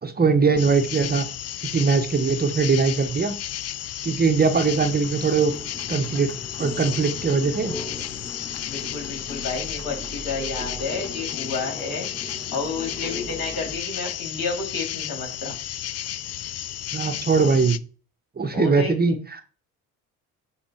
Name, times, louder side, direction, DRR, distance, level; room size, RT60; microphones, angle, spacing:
voice 1, 0.0-1.3 1.6-3.3 4.0-5.5 5.9-6.3 6.6-7.7 16.9-17.8 18.4-19.4, right 5 dB, 25° right, 7 dB, 1.0 m, -21 dB
sound 1, 0.6-17.8, left 12 dB, 45° left, 0.5 m, -33 dB
sound 2, 4.4-13.8, left 1 dB, 10° left, 1.9 m, -39 dB
voice 2, 8.6-15.6 18.5-19.2, left 4 dB, 65° left, 2 dB, 3.5 m, -31 dB
7.3 x 4.0 x 4.5 m, 0.38 s
supercardioid pair, 70°, 37 cm